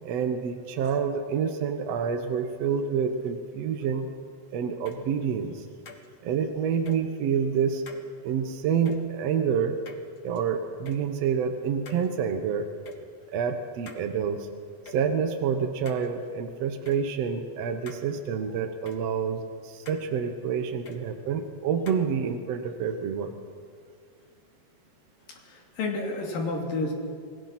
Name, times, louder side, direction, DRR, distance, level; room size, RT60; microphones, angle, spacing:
voice 1, 0.0-4.1 4.5-5.7 6.2-7.8 8.2-9.8 10.2-12.7 13.3-14.5 14.9-23.3, right 7 dB, 65° right, 6 dB, 1.7 m, -28 dB
sound 1, 4.9-5.0 5.9-6.1 6.9-7.0 7.9-8.0 8.9-9.0 9.9-10.4 10.9-11.0 11.9-12.1 12.9-13.0 13.9-14.0 14.9-15.0 15.9-16.1 16.9-17.0 17.9-18.0 18.9-19.0 19.9-20.1 20.9-21.0 21.9-22.0, left 4 dB, 45° left, 1.3 m, -45 dB
voice 2, 25.3-26.9, left 3 dB, 70° left, 1 dB, 4.4 m, -30 dB
28.0 x 20.5 x 5.9 m, 2.2 s
omnidirectional pair, 4.2 m